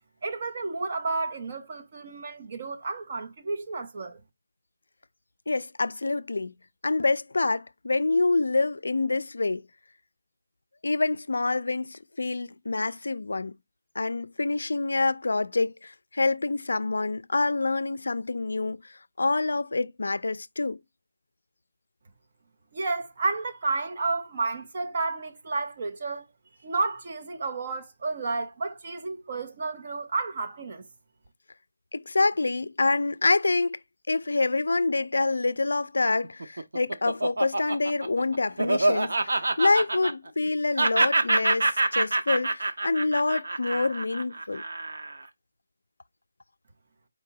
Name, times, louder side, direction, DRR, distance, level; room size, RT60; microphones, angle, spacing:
voice 1, 0.2-4.2 22.7-26.2 26.6-30.8, right 3 dB, 25° right, 0.5 m, -31 dB
voice 2, 5.5-6.5 6.8-9.6 10.8-13.6 14.0-20.8 31.9-33.8 34.1-44.6, left 3 dB, 80° left, 0.3 m, -26 dB
Laughter, 36.2-40.5 40.8-45.2, right 2 dB, 80° right, 0.7 m, -26 dB
4.7 x 2.7 x 3.8 m
hypercardioid pair, 180°, 0 cm